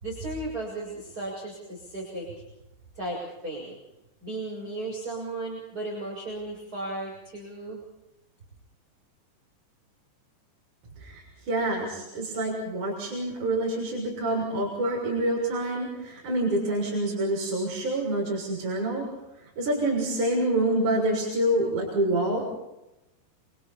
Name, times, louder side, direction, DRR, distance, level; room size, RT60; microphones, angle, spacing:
voice 1, 0.0-2.3 2.9-3.8 4.2-7.8, right 2 dB, 20° right, -3 dB, 6.6 m, -35 dB
voice 2, 11.0-19.1 19.6-22.5, right 1 dB, 40° right, -2 dB, 8.0 m, -27 dB
28.5 x 26.5 x 4.4 m, 0.93 s
omnidirectional pair, 5.4 m